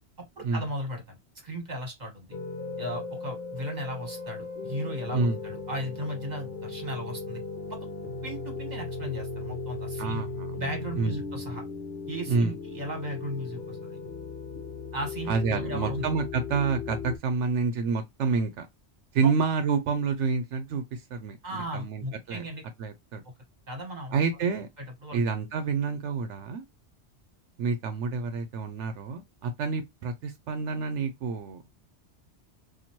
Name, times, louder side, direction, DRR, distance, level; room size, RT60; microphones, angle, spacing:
voice 1, 0.4-2.3 2.8-7.4 7.7-7.8 8.2-10.2 10.6-11.6 12.1-14.0 14.9-16.1 19.2-19.3 21.4-22.6 23.7-24.1 24.8-25.2, equal, 40° right, 1.5 m, -36 dB
sound 1, 2.3-17.2, left 4 dB, 50° left, 0.8 m, -37 dB
voice 2, 10.0-10.5 11.0-11.2 12.3-12.6 15.3-18.7 19.1-22.5 22.8-23.2 24.1-24.7 25.1-26.6 27.6-31.6, right 4 dB, 80° right, 1.0 m, -28 dB
4.2 x 2.6 x 2.9 m
omnidirectional pair, 1.2 m